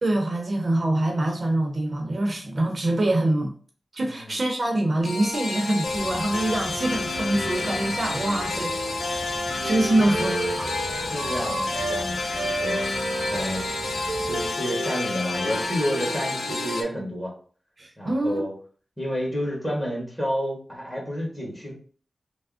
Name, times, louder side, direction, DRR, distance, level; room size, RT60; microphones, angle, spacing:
voice 1, 0.0-3.5 3.9-8.7 9.1-9.2 9.6-10.7 17.8-18.4, right 1 dB, 55° right, 3 dB, 0.7 m, -25 dB
voice 2, 4.0-4.4 10.0-10.1 11.0-13.0 13.3-13.7 14.2-17.3 18.0-18.5 19.0-21.7, equal, 15° left, -2 dB, 1.6 m, -30 dB
sound 1, 5.0-16.8, left 3 dB, 80° left, 0.5 m, -29 dB
sound 2, 5.8-14.5, right 1 dB, 20° right, 0.4 m, -40 dB
Wind instrument woodwind instrument, 8.0-12.0 12.3-16.8, right 3 dB, 90° right, 0.6 m, -33 dB
3.4 x 2.0 x 3.6 m, 0.43 s
cardioid pair, 60°, 0 cm